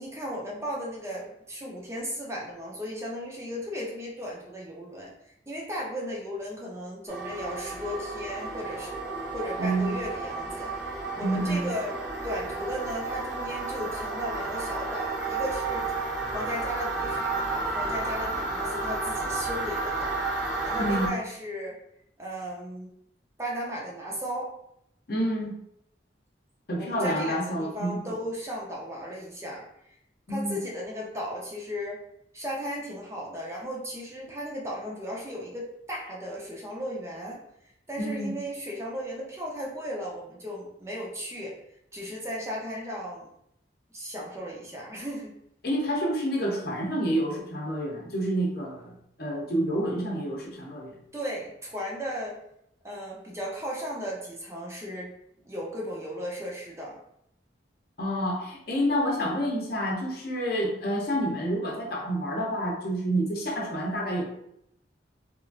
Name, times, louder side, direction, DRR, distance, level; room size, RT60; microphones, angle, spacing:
voice 1, 0.0-5.1 5.5-8.9 9.3-10.7 11.2-11.9 12.2-16.0 16.3-20.2 20.6-21.8 22.2-22.9 23.4-24.5 26.8-29.7 30.3-32.0 32.3-41.6 41.9-43.3 43.9-45.3 51.1-52.3 52.8-55.1 55.5-57.0, equal, 15° right, -3 dB, 0.5 m, -35 dB
sound 1, 7.1-21.1, right 3 dB, 75° right, 0.8 m, -32 dB
voice 2, 9.6-9.9 11.2-11.7 20.8-21.1 25.1-25.5 26.7-28.1 30.3-30.6 38.0-38.3 45.6-50.9 58.0-64.3, equal, 55° left, -2 dB, 0.7 m, -28 dB
2.9 x 2.4 x 2.5 m, 0.76 s
head